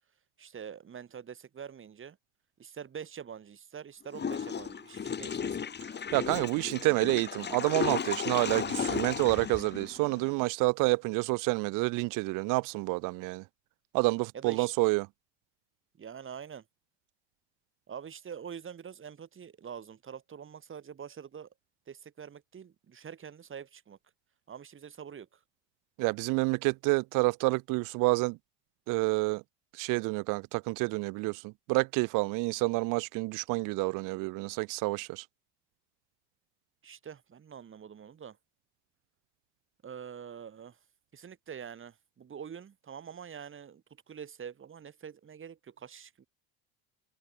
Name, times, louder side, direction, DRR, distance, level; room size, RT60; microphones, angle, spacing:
voice 1, 0.4-2.2 2.6-5.7 14.3-14.7 16.0-16.6 17.9-21.5 21.9-24.0 24.5-25.4 36.8-38.4 39.8-40.8 41.1-46.3, right 7 dB, 35° right, 7.3 m, -45 dB
Water / Toilet flush, 4.1-10.3, left 7 dB, 30° left, 2.3 m, -35 dB
voice 2, 6.1-13.4 13.9-15.1 26.0-28.4 28.9-29.4 29.7-35.2, right 25 dB, 70° right, 0.9 m, -28 dB
supercardioid pair, 85°, 33 cm